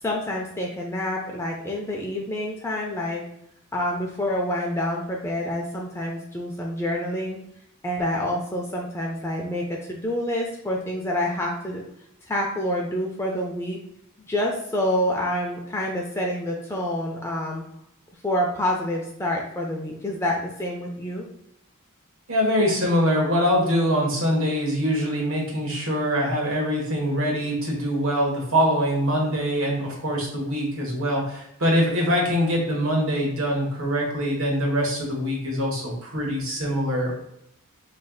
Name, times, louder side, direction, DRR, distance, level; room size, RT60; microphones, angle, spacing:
voice 1, 0.0-3.2 3.7-7.4 7.8-11.8 12.3-13.8 14.2-17.6 18.2-21.3, left 1 dB, 15° left, -1 dB, 0.4 m, -27 dB
voice 2, 22.3-37.1, equal, 70° right, -1 dB, 1.3 m, -23 dB
5.1 x 3.2 x 2.3 m, 0.78 s
head